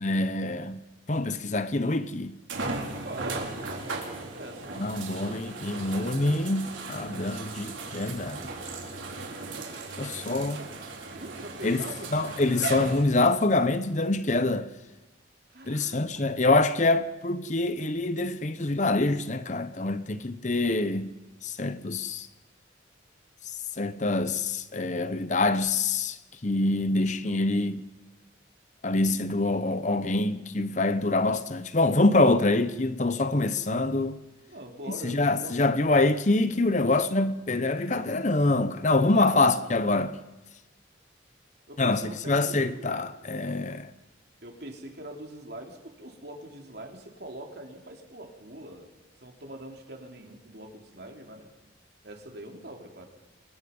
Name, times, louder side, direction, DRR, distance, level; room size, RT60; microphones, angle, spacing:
voice 1, 0.0-0.8 1.1-2.3 4.8-8.4 10.0-10.6 11.6-11.8 12.1-14.7 15.7-21.1 21.4-22.3 23.8-26.2 26.4-27.8 28.8-34.2 35.0-40.2 41.8-43.9, left 2 dB, 40° left, 0.9 m, -25 dB
sound 1, 1.4-1.5 2.5-13.5 14.3-14.4 17.8-17.9, right 3 dB, 80° right, 4.5 m, -37 dB
voice 2, 3.0-4.7 10.2-10.7 11.1-12.4 15.5-16.4 34.3-35.6 39.0-39.6 41.7-43.3 44.4-48.9 49.2-51.5 52.0-53.1, right 1 dB, 55° right, 3.5 m, -43 dB
29.5 x 21.5 x 5.5 m
head